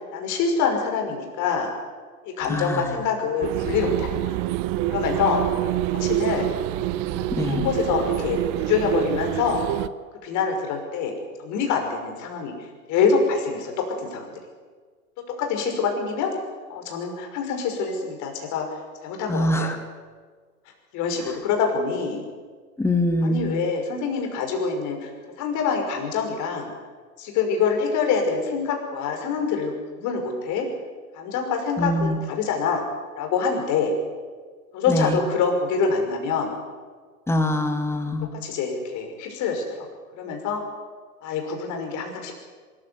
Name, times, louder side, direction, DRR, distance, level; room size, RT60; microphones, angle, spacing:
voice 1, 0.1-1.7 2.2-4.3 4.9-5.4 5.9-6.5 7.4-9.6 10.2-11.1 11.4-12.5 12.9-13.7 14.0-14.3 15.4-16.3 16.7-18.7 19.0-19.7 20.9-22.2 23.2-25.1 25.4-26.7 27.2-30.7 31.1-32.8 33.2-33.9 34.7-36.5 38.4-39.6 40.2-40.6 41.2-42.4, left 5 dB, 40° left, 3 dB, 5.9 m, -25 dB
voice 2, 2.5-2.9 7.3-7.6 19.3-19.8 22.8-23.6 31.8-32.2 34.9-35.2 37.3-38.3, left 1 dB, 5° left, 6 dB, 2.2 m, -23 dB
sound 1, 3.4-9.9, right 14 dB, 35° right, 0.9 m, -26 dB
23.0 x 14.5 x 9.6 m, 1.5 s
hypercardioid pair, 115°, 46 cm